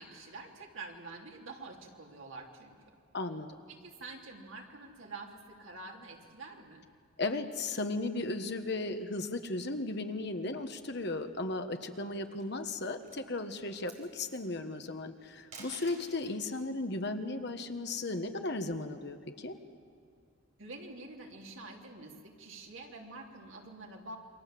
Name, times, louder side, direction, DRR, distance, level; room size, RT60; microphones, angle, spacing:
voice 1, 0.0-3.0 3.7-6.8 20.6-24.2, right 3 dB, 70° right, 0 dB, 3.4 m, -47 dB
voice 2, 3.1-3.6 7.2-19.6, left 2 dB, 50° left, 7 dB, 1.5 m, -36 dB
sound 1, 12.1-12.6 13.0-13.3 13.7-14.4 15.3-16.4 17.9-19.0, right 3 dB, 35° right, 4.4 m, -52 dB
28.5 x 24.0 x 7.8 m, 2.1 s
head